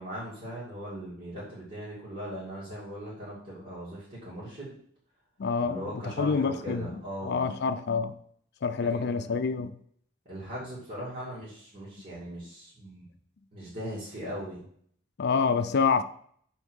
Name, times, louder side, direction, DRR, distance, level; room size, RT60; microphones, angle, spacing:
voice 1, 0.0-4.8 5.6-7.4 8.9-9.4 10.2-13.0 13.5-14.6, equal, 45° right, 2.6 m, -39 dB
voice 2, 5.4-6.9 7.2-8.2 8.6-9.7 15.2-16.0, left 5 dB, 55° left, 0.5 m, -27 dB
5.4 x 4.5 x 6.3 m
head